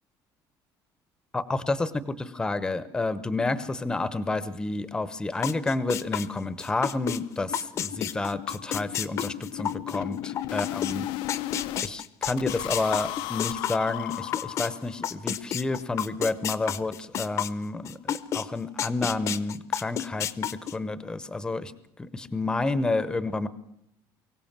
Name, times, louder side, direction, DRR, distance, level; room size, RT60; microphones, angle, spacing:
voice 1, 1.3-11.1 11.8-21.7 22.0-23.5, left 3 dB, 10° left, 15 dB, 0.9 m, -30 dB
sound 1, 5.0-5.1 5.4-5.5 5.8-5.9 6.3-6.4 6.7-11.9 12.3-15.0, left 16 dB, 80° left, 0.8 m, -36 dB
sound 2, 5.4-7.2 7.5-14.7 15.0-18.4 18.8-20.7, left 10 dB, 35° left, 0.8 m, -30 dB
24.0 x 16.5 x 7.4 m, 0.76 s
cardioid pair, 180°, 8 cm